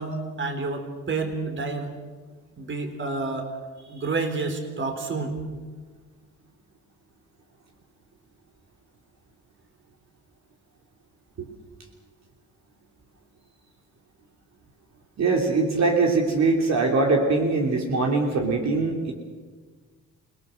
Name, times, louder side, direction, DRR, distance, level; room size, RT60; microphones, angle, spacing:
voice 1, 0.0-1.9 2.6-3.5 3.9-5.4, right 3 dB, 40° right, 7 dB, 3.9 m, -29 dB
voice 2, 15.2-19.1, right 3 dB, 60° right, 1 dB, 3.3 m, -22 dB
28.5 x 19.0 x 6.6 m, 1.4 s
cardioid pair, 90°, 30 cm